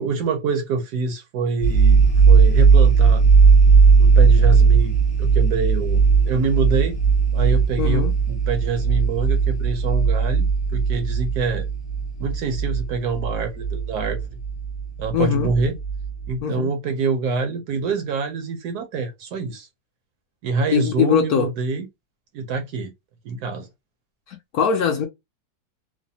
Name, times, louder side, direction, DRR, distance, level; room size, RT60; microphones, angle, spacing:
voice 1, 0.0-3.2 4.0-4.9 5.2-7.0 7.3-11.7 12.2-14.2 15.0-15.8 16.3-19.7 20.4-21.9 22.3-22.9 23.2-23.7, right 4 dB, 70° right, 1.0 m, -26 dB
sound 1, 1.6-16.3, right 5 dB, 40° left, 0.5 m, -17 dB
voice 2, 7.8-8.1 15.1-15.5 16.4-16.7 20.7-21.5 24.3-25.1, left 7 dB, 70° left, 0.9 m, -21 dB
3.2 x 2.1 x 2.6 m
omnidirectional pair, 2.0 m